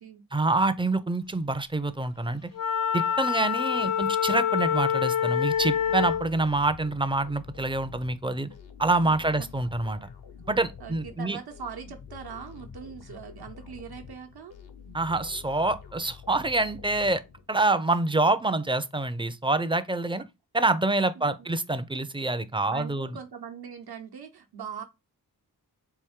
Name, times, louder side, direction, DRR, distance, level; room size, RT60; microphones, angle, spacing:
voice 1, 0.3-2.5 2.9-8.5 8.8-10.1 10.5-11.4 14.9-17.2 17.5-20.2 20.5-23.1, right 2 dB, 15° right, 0.4 m, -26 dB
Wind instrument woodwind instrument, 2.5-6.3, left 8 dB, 60° left, 0.5 m, -26 dB
sound 1, 5.5-17.7, left 6 dB, 80° left, 0.8 m, -47 dB
voice 2, 9.1-9.4 10.8-14.5 21.2-21.5 22.7-24.8, right 7 dB, 80° right, 0.9 m, -41 dB
4.5 x 2.6 x 3.5 m
wide cardioid pair, 60°, 38 cm